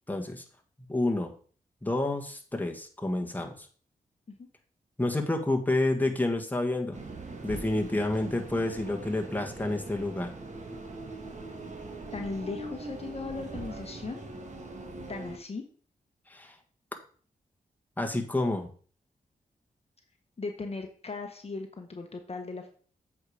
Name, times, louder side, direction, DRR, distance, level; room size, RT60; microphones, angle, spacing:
voice 1, 0.1-0.4 0.8-1.3 1.8-3.7 5.0-7.0 7.4-10.3 16.3-16.5 18.0-18.7, left 2 dB, 10° left, 2 dB, 1.6 m, -29 dB
sound 1, 6.9-15.4, right 2 dB, 50° right, 1.6 m, -41 dB
voice 2, 12.1-14.2 15.1-15.6 20.4-22.7, left 3 dB, 40° left, 4 dB, 1.1 m, -37 dB
7.9 x 4.8 x 5.0 m, 0.43 s
cardioid pair, 65°, 15 cm